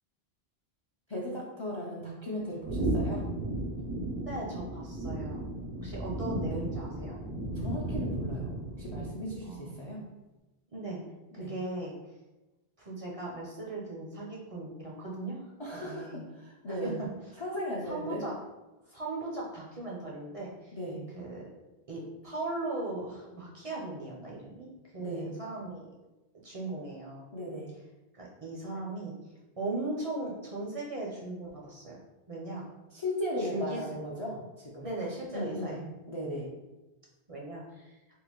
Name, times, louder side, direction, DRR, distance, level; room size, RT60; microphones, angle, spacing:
voice 1, 1.1-3.2 6.4-6.6 7.5-10.0 11.3-11.5 15.6-17.0 17.4-18.2 20.7-21.1 25.0-25.3 27.3-27.7 32.9-34.9 35.3-36.5, equal, 40° left, -4 dB, 0.4 m, -37 dB
sound 1, 2.6-9.4, right 1 dB, 90° right, 0.9 m, -34 dB
voice 2, 4.2-5.4 5.8-7.2 9.4-9.8 10.7-11.0 11.3-12.1 12.8-15.5 15.8-16.2 16.7-17.1 17.9-18.4 18.8-20.8 21.1-21.5 21.9-25.9 26.4-27.3 28.1-32.0 32.3-32.7 33.4-33.8 34.8-35.8 37.3-38.0, right 2 dB, 45° right, -4 dB, 0.5 m, -38 dB
3.6 x 2.4 x 2.9 m, 1.1 s
omnidirectional pair, 1.1 m